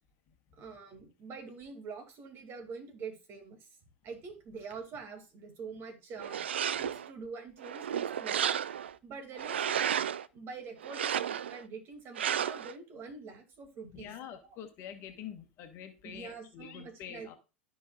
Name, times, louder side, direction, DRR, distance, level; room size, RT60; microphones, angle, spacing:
voice 1, 0.6-3.7 4.0-6.4 6.7-8.6 9.0-9.8 10.3-14.1 14.4-14.6 16.0-17.3, right 5 dB, 40° right, 4 dB, 2.6 m, -45 dB
sound 1, 6.2-7.1 7.6-8.9 9.4-10.3 10.8-11.6 12.2-12.7, right 9 dB, 75° right, 0.4 m, -32 dB
voice 2, 13.9-17.4, left 9 dB, 45° left, 6 dB, 1.4 m, -46 dB
13.0 x 5.4 x 2.5 m, 0.30 s
figure-of-eight pair, 85°, 6 cm